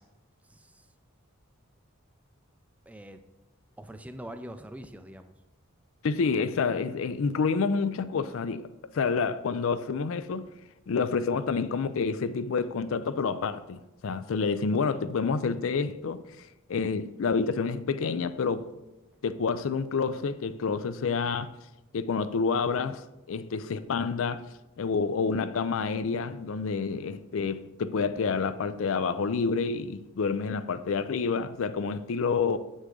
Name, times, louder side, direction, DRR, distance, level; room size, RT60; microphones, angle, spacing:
voice 1, 0.5-0.9 2.9-3.2 3.8-5.3 28.1-28.4, right 1 dB, 5° right, 0.4 m, -44 dB
voice 2, 6.0-8.7 8.9-10.5 10.9-16.2 16.7-18.7 19.2-21.5 21.9-24.4 24.8-32.6, left 5 dB, 65° left, 0.4 m, -28 dB
8.0 x 6.3 x 3.8 m
head